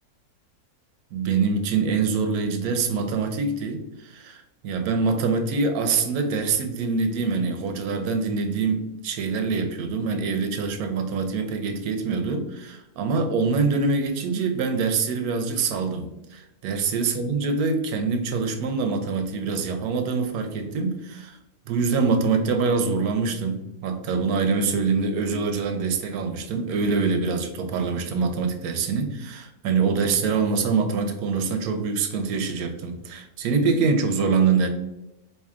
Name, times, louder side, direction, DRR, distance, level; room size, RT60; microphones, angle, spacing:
voice 1, 1.1-21.4 21.7-34.7, right 4 dB, 85° right, 7 dB, 1.1 m, -25 dB
4.5 x 2.8 x 2.4 m, 0.92 s
omnidirectional pair, 1.6 m